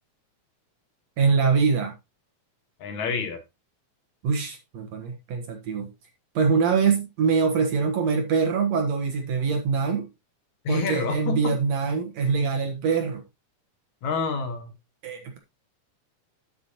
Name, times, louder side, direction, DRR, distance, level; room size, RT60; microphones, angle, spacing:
voice 1, 1.2-1.9 4.2-5.9 6.3-10.1 10.7-13.2 15.0-15.4, right 5 dB, 65° right, 2.5 m, -24 dB
voice 2, 2.8-3.4 10.6-11.6 14.0-14.7, left 5 dB, 70° left, 2.8 m, -28 dB
10.0 x 8.7 x 2.9 m
omnidirectional pair, 3.4 m